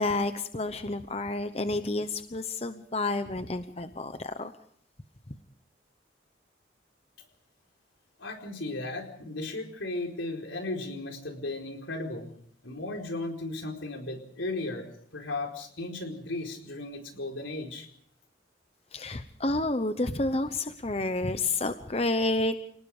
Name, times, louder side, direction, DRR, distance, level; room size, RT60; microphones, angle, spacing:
voice 1, 0.0-4.5 18.9-22.6, left 2 dB, 30° left, 9 dB, 0.9 m, -30 dB
voice 2, 8.2-12.3 12.6-14.9 15.1-17.9, left 2 dB, 85° left, 3 dB, 4.5 m, -35 dB
28.5 x 19.0 x 5.0 m, 0.63 s
head